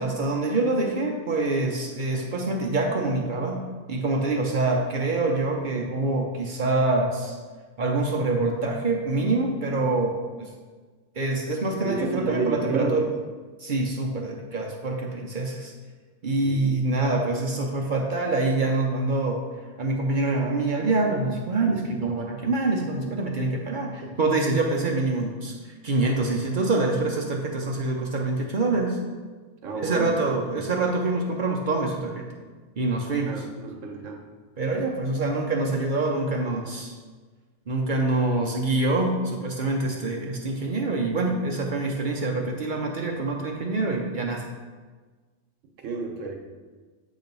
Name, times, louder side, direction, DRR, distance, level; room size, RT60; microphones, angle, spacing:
voice 1, 0.0-3.6 3.9-7.4 7.8-10.5 11.2-13.1 13.6-15.7 16.2-19.4 19.8-29.0 29.7-32.3 32.8-33.5 34.6-37.0 37.7-44.5, right 2 dB, 50° right, 0 dB, 0.7 m, -25 dB
voice 2, 11.8-13.0 16.4-16.7 29.6-30.1 30.5-30.6 33.3-34.2 45.8-46.3, right 4 dB, 80° right, 2 dB, 1.2 m, -30 dB
8.0 x 2.9 x 5.3 m, 1.4 s
omnidirectional pair, 1.3 m